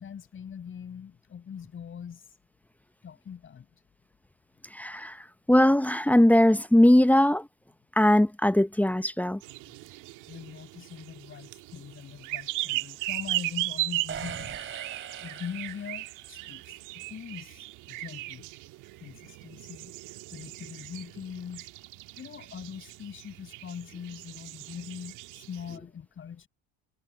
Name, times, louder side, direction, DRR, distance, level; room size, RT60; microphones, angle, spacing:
voice 1, 0.0-2.4 3.0-3.8 10.3-14.9 15.2-18.5 19.0-19.9 20.3-21.7 22.2-26.5, left 7 dB, 35° left, 6.9 m, -42 dB
voice 2, 4.7-5.2 5.5-7.5 8.0-9.4, left 1 dB, 5° left, 1.0 m, -20 dB
sound 1, 9.4-25.8, right 19 dB, 65° right, 1.8 m, -37 dB
sound 2, 14.1-16.3, right 9 dB, 40° right, 3.7 m, -40 dB
supercardioid pair, 90°, 33 cm